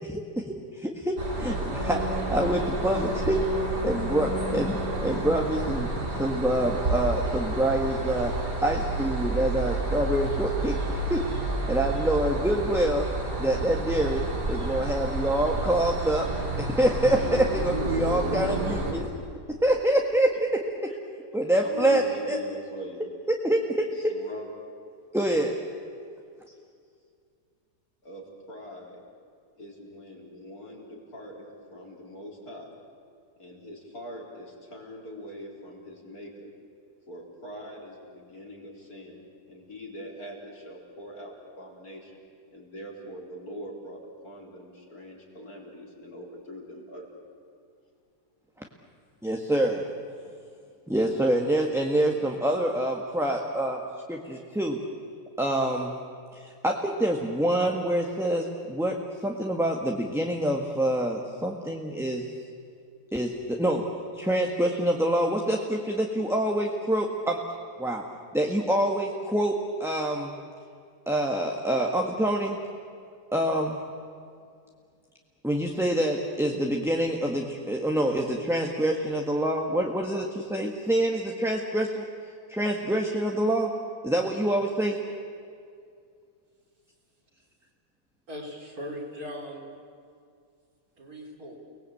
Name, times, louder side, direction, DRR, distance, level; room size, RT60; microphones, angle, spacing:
voice 1, 0.0-3.4 3.8-5.9 6.2-8.3 8.6-11.2 11.7-13.1 13.4-16.3 16.6-19.1 19.6-20.5 21.3-22.4 23.4-23.8 25.1-25.5 49.2-49.8 50.9-53.8 54.1-54.8 55.4-55.9 56.3-58.9 59.2-62.2 63.1-63.9 64.2-67.4 67.8-68.0 68.3-69.5 69.8-70.3 71.1-72.6 73.3-73.8 75.4-82.0 82.5-83.7 84.0-85.0, right 1 dB, ahead, 0 dB, 1.4 m, -26 dB
sound 1, 1.2-18.9, right 2 dB, 80° right, 4.0 m, -30 dB
voice 2, 17.8-18.3 19.1-19.2 20.9-21.0 21.6-23.0 23.9-24.5 28.0-29.0 29.6-32.7 33.4-36.5 37.1-42.1 42.5-47.3, left 1 dB, 60° left, -2 dB, 4.7 m, -42 dB
voice 3, 88.3-89.7 91.0-91.6, equal, 60° right, -1 dB, 4.3 m, -39 dB
30.0 x 19.5 x 8.6 m, 2.3 s
omnidirectional pair, 1.7 m